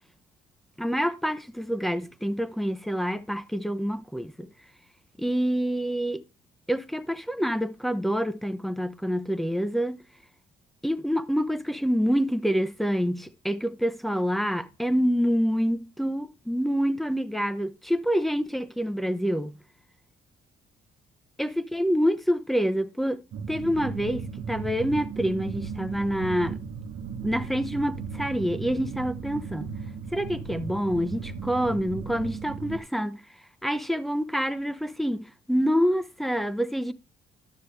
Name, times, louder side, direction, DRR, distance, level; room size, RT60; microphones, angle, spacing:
voice 1, 0.8-4.5 5.2-6.2 6.7-10.0 10.8-19.6 21.4-23.2 23.5-26.6 27.2-29.7 30.1-33.2 33.6-36.9, equal, ahead, 0.8 m, -27 dB
sound 1, 23.3-32.8, right 6 dB, 85° right, 1.1 m, -36 dB
12.5 x 6.7 x 3.2 m
cardioid pair, 90°, 20 cm